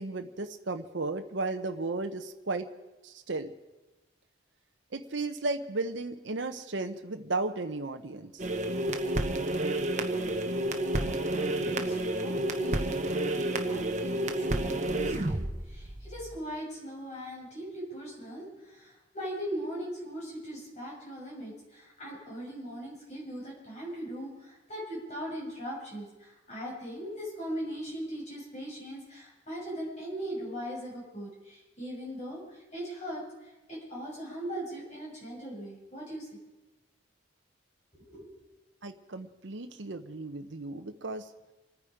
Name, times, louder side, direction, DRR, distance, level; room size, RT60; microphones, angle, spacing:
voice 1, 0.0-2.7 3.0-3.5 4.9-8.4 38.8-41.3, right 3 dB, 65° right, 6 dB, 0.8 m, -34 dB
sound 1, 8.4-16.4, right 1 dB, 40° right, 1.1 m, -30 dB
voice 2, 10.9-36.3 38.0-38.4, equal, 35° left, -5 dB, 6.9 m, -40 dB
27.0 x 9.8 x 5.0 m, 1.1 s
head